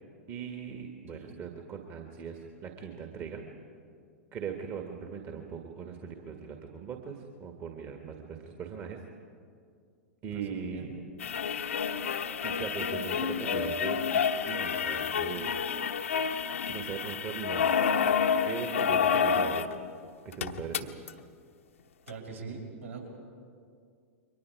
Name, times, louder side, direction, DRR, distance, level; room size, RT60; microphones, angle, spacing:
voice 1, 0.3-3.4 4.3-9.0 10.2-10.9 12.4-15.9 16.7-17.7 18.4-19.7 20.3-20.9, right 6 dB, 30° right, 3 dB, 1.8 m, -40 dB
voice 2, 10.3-10.9 22.1-23.1, right 4 dB, 65° right, -1 dB, 5.5 m, -43 dB
sound 1, 11.2-19.7 20.0-20.1 20.3-21.1 22.1-22.2, left 7 dB, 65° left, 1.0 m, -29 dB
29.5 x 23.5 x 4.8 m, 2.3 s
figure-of-eight pair, 100°, 8 cm